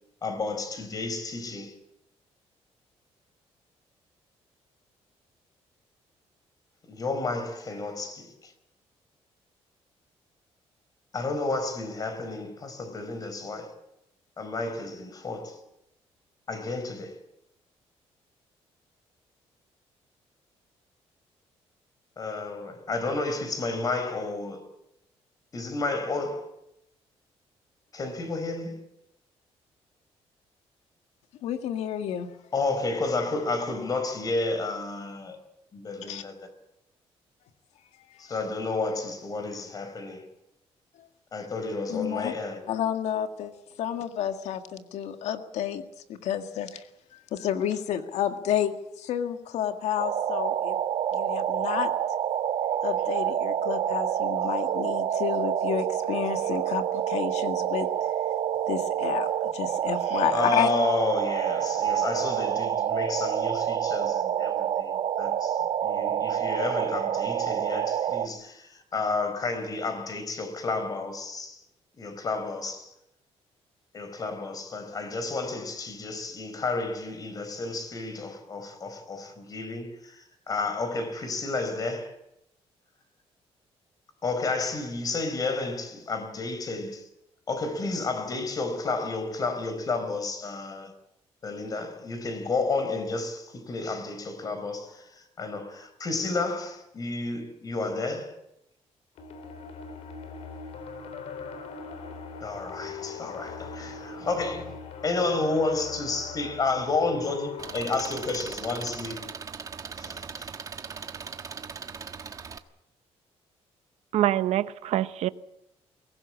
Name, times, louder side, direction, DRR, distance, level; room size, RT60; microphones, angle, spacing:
voice 1, 0.2-1.7 6.9-8.5 11.1-13.7 14.4-15.6 16.5-17.2 22.2-24.7 25.5-26.5 27.9-28.8 32.5-35.4 35.7-36.5 38.2-40.3 41.3-42.6 60.3-71.6 72.0-72.9 73.9-82.1 84.2-87.1 87.5-90.9 91.4-98.4 102.4-104.8 105.0-109.2 109.9-110.5, left 3 dB, 35° left, 4.4 m, -31 dB
voice 2, 31.4-32.3 36.1-36.2 41.9-42.3 42.7-43.5 43.8-45.8 46.1-46.8 47.3-50.8 51.1-51.9 52.8-57.9 58.7-60.7, left 10 dB, 90° left, 1.8 m, -30 dB
sound 1, 50.0-68.3, right 10 dB, 65° right, 1.2 m, -28 dB
sound 2, 99.2-108.5, left 5 dB, 70° left, 3.7 m, -41 dB
Engine, 107.6-112.6, right 5 dB, 30° right, 1.3 m, -39 dB
voice 3, 114.1-115.3, right 13 dB, 80° right, 0.9 m, -25 dB
22.5 x 18.5 x 8.5 m
cardioid pair, 145°, 11 cm